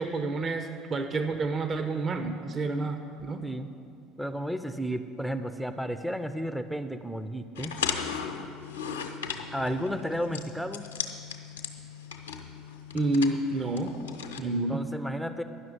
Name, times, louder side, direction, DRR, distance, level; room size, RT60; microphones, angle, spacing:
voice 1, 0.0-3.4 12.9-14.0 14.4-14.9, right 2 dB, 40° right, 7 dB, 0.8 m, -29 dB
voice 2, 4.2-7.7 9.5-10.9 14.4-15.4, equal, ahead, 9 dB, 0.5 m, -33 dB
sound 1, 7.6-14.4, left 6 dB, 85° left, 0.8 m, -37 dB
11.0 x 6.2 x 8.8 m, 2.4 s
hypercardioid pair, 65°, 0 cm